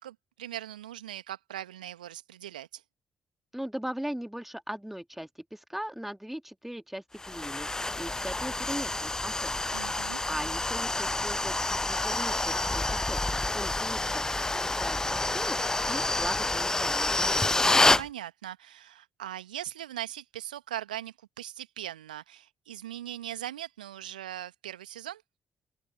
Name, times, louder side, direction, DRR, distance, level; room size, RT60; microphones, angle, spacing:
voice 1, 0.0-2.8 9.7-10.2 18.0-25.2, right 12 dB, 80° right, 2.0 m, -40 dB
voice 2, 3.5-7.7 7.9-13.2 13.5-15.6 15.8-17.5, equal, 5° right, 2.4 m, -39 dB
sound 1, 7.2-18.0, left 2 dB, 15° left, 0.3 m, -28 dB
open air
figure-of-eight pair, 40°, 4 cm